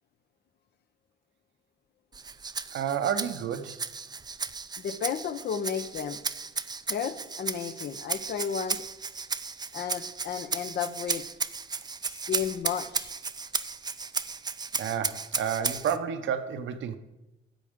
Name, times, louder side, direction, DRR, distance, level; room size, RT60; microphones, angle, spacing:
Rattle (instrument), 2.1-16.0, right 4 dB, 20° right, 0.4 m, -34 dB
voice 1, 2.7-3.8 14.7-17.0, right 8 dB, 75° right, 10 dB, 0.8 m, -30 dB
voice 2, 4.8-6.2 6.9-8.8 9.7-11.2 12.1-13.1, left 8 dB, 55° left, 11 dB, 0.7 m, -33 dB
13.0 x 8.3 x 3.6 m, 0.99 s
cardioid pair, 90°, 20 cm